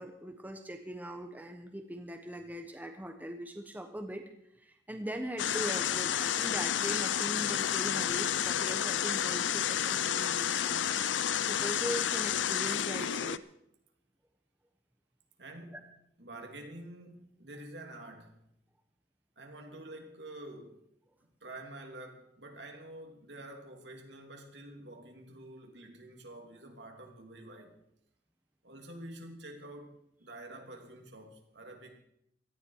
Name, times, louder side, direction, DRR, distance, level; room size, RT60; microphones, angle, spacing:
voice 1, 0.0-4.2 4.6-10.9 11.5-13.4, equal, 10° right, 1.1 m, -40 dB
sound 1, 5.4-13.4, left 9 dB, 90° left, 0.5 m, -30 dB
voice 2, 15.4-15.9 16.2-18.4 19.4-20.8 21.2-27.8 28.6-32.0, right 1 dB, 70° right, 2.8 m, -48 dB
17.5 x 13.5 x 4.8 m
head